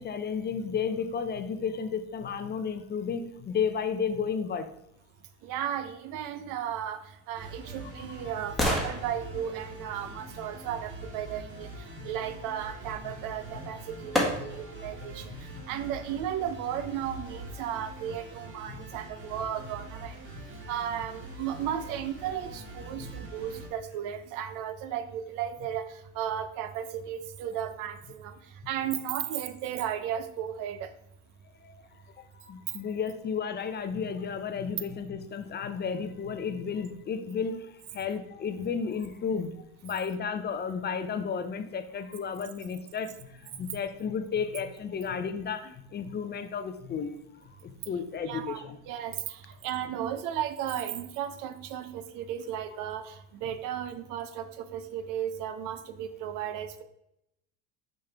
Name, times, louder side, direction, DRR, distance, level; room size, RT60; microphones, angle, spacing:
voice 1, 0.0-4.7 8.0-8.3 12.0-12.1 13.0-13.2 14.2-15.7 18.7-18.8 20.4-20.5 23.0-23.1 31.6-31.7 32.3-39.6 39.8-47.1 47.4-48.8, left 6 dB, 30° left, 9 dB, 0.6 m, -33 dB
voice 2, 5.4-7.0 7.3-11.7 12.0-15.3 15.7-20.2 20.7-25.9 26.1-28.3 28.7-30.9 48.3-56.8, right 10 dB, 60° right, 11 dB, 0.8 m, -35 dB
sound 1, 7.1-11.1 13.2-13.3 14.1-14.8 15.3-15.4, left 1 dB, ahead, 1.6 m, -34 dB
sound 2, 7.4-23.7, right 1 dB, 35° right, 2.0 m, -44 dB
5.5 x 5.3 x 3.4 m, 0.81 s
supercardioid pair, 95°, 36 cm